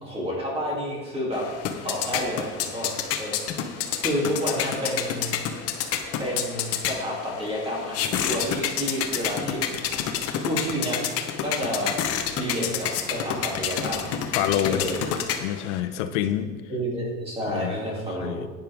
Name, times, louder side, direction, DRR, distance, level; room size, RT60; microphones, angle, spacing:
voice 1, 0.0-1.5 1.8-3.6 4.0-5.4 6.2-9.6 10.4-11.0 11.4-12.0 12.3-14.1 14.7-15.0 16.7-18.4, equal, 15° right, -3 dB, 2.8 m, -30 dB
sound 1, 1.3-15.8, left 8 dB, 40° left, 1.0 m, -29 dB
voice 2, 14.3-14.8 15.4-16.6 17.5-17.7 18.2-18.5, left 11 dB, 85° left, 10 dB, 0.9 m, -26 dB
11.0 x 9.3 x 3.6 m, 1.4 s
supercardioid pair, 140°, 35 cm